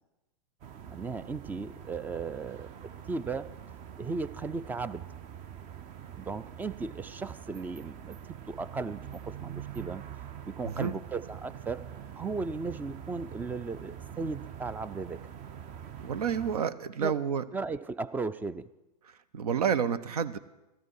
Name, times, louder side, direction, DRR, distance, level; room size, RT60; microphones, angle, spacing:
sound 1, 0.6-16.6, right 9 dB, 35° right, 0.8 m, -45 dB
voice 1, 0.9-2.7 3.1-3.5 4.0-5.1 6.2-8.2 8.5-10.0 10.5-11.8 12.2-15.2 17.0-17.2 17.5-18.7, right 4 dB, 10° right, 16 dB, 0.4 m, -36 dB
voice 2, 10.6-10.9 16.0-17.4 19.3-20.4, right 7 dB, 70° right, 16 dB, 0.8 m, -29 dB
14.5 x 13.5 x 4.7 m, 0.99 s
hypercardioid pair, 105°, 20 cm